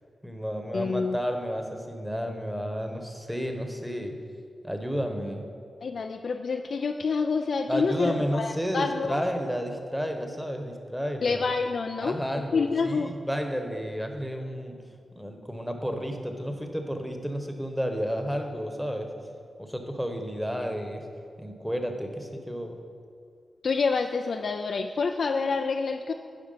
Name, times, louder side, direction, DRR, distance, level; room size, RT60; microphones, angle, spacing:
voice 1, 0.2-4.1 4.6-5.4 7.7-11.4 12.0-14.8 15.1-19.1 19.6-21.0 21.4-22.8, equal, ahead, 4 dB, 1.1 m, -31 dB
voice 2, 0.7-1.2 5.8-9.2 11.2-12.2 12.5-13.2 23.6-26.1, left 4 dB, 70° left, 5 dB, 0.3 m, -27 dB
10.5 x 4.8 x 5.6 m, 2.2 s
cardioid pair, 65°, 0 cm